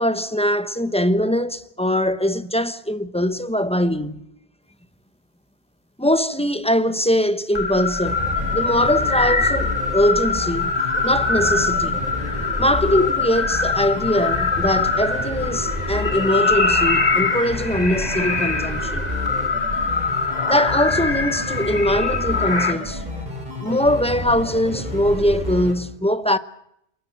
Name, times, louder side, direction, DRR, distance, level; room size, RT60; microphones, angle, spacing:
voice 1, 0.0-4.2 6.0-8.2 8.5-10.7 11.0-12.1 12.6-19.1 20.5-23.0 23.6-26.4, equal, 5° left, 0.9 m, -21 dB
sound 1, 7.6-22.7, left 4 dB, 40° left, 2.4 m, -23 dB
sound 2, 8.0-25.7, left 1 dB, 40° right, 5.5 m, -30 dB
29.0 x 20.5 x 7.7 m
omnidirectional pair, 1.1 m